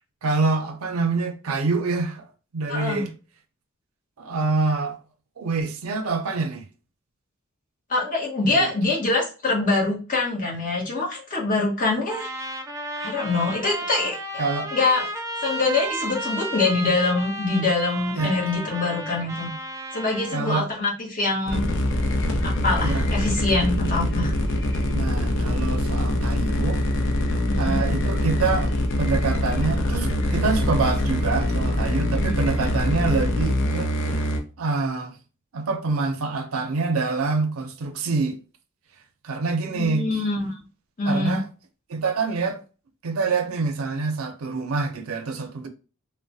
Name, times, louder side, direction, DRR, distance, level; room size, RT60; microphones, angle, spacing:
voice 1, 0.2-2.2 2.5-3.1 4.2-5.0 5.4-6.6 8.4-8.7 14.4-14.7 18.1-18.4 20.3-20.7 22.8-23.1 24.9-26.8 27.6-34.3 34.6-35.1 35.5-38.4 39.2-40.2 41.1-41.5 41.9-42.6 43.0-45.7, right 4 dB, 90° right, 0.5 m, -26 dB
voice 2, 2.7-3.1 7.9-12.3 13.0-14.2 14.7-15.1 15.4-19.5 19.9-21.7 22.4-24.3 27.5-27.8 32.1-32.3 39.7-40.6 41.0-41.4, left 3 dB, 40° left, 1.0 m, -24 dB
Trumpet, 12.1-20.6, right 1 dB, 15° right, 0.4 m, -33 dB
sound 1, 21.5-34.4, left 1 dB, 60° left, 0.5 m, -24 dB
3.1 x 2.1 x 2.6 m
head